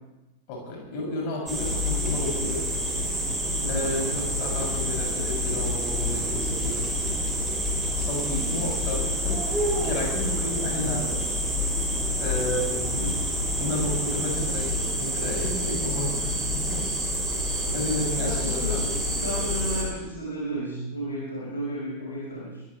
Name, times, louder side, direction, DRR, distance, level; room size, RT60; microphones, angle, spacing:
voice 1, 0.5-2.7 3.1-3.2 3.7-6.9 7.9-11.2 12.1-13.0 13.6-16.8 17.7-18.9, left 1 dB, 45° left, -2 dB, 7.4 m, -32 dB
sound 1, 1.5-19.8, equal, 10° right, 6.4 m, -27 dB
voice 2, 3.6-3.9 13.0-13.2 18.2-18.8 19.1-22.6, equal, 70° left, -4 dB, 5.3 m, -33 dB
23.0 x 15.5 x 3.4 m, 1.0 s
figure-of-eight pair, 90°, 0 cm